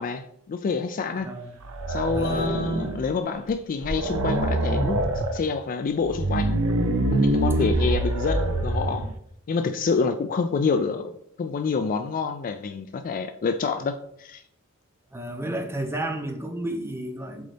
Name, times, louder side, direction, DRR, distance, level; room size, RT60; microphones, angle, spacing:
voice 1, 0.0-1.3 1.9-6.6 7.1-9.1 9.5-11.1 11.4-14.4, left 4 dB, 40° left, 0.3 m, -27 dB
voice 2, 1.2-1.6 2.1-2.5 7.6-7.9 15.1-17.4, right 1 dB, 10° right, 0.7 m, -32 dB
sound 1, 1.6-3.1 3.5-3.6 3.8-5.4 6.0-9.1, right 1 dB, 75° right, 0.7 m, -25 dB
7.7 x 4.0 x 3.4 m
head